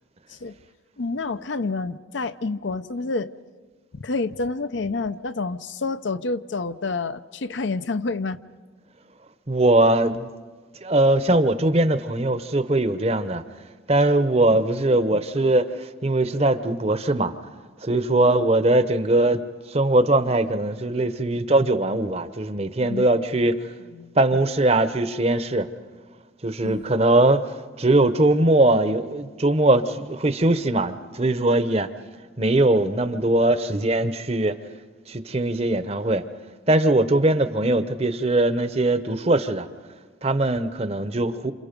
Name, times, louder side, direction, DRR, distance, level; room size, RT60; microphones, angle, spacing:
voice 1, 1.0-3.3 3.9-8.4 14.5-14.6 15.1-15.5 18.2-18.5 22.8-23.1 23.9-24.4 26.6-26.8, left 3 dB, 70° left, 12 dB, 0.7 m, -29 dB
voice 2, 9.5-10.3 10.8-13.4 13.9-17.3 17.8-19.4 19.7-23.6 24.2-25.7 26.4-27.4 27.8-31.9 32.4-34.6 35.1-36.2 36.7-39.7 40.2-41.5, right 2 dB, 30° right, 12 dB, 0.8 m, -21 dB
28.0 x 28.0 x 5.2 m, 1.5 s
head